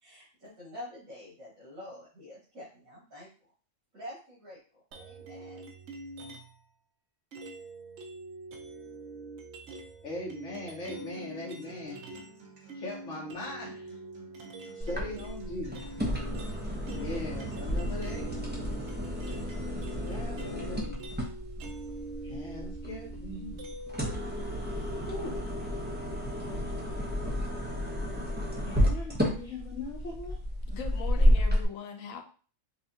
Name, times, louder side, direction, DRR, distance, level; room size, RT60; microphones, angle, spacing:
voice 1, 0.0-3.3 3.9-4.6 4.9-5.6, left 1 dB, 80° right, -9 dB, 2.0 m, -46 dB
sound 1, 4.9-6.6 7.3-12.4 12.7-24.1, right 2 dB, 60° right, 0.9 m, -44 dB
voice 2, 10.0-12.0 12.7-14.0 14.7-16.0 16.9-18.6 19.9-21.2 22.2-23.6 25.1-25.5 28.6-30.4, left 1 dB, 65° left, -3 dB, 1.3 m, -40 dB
Acoustic guitar, 10.9-18.9, right 3 dB, 35° right, 1.0 m, -52 dB
sound 2, 14.8-31.6, equal, 10° right, 0.6 m, -31 dB
voice 3, 30.7-32.2, left 7 dB, 80° left, 4 dB, 1.1 m, -40 dB
5.5 x 2.3 x 2.8 m, 0.39 s
omnidirectional pair, 1.4 m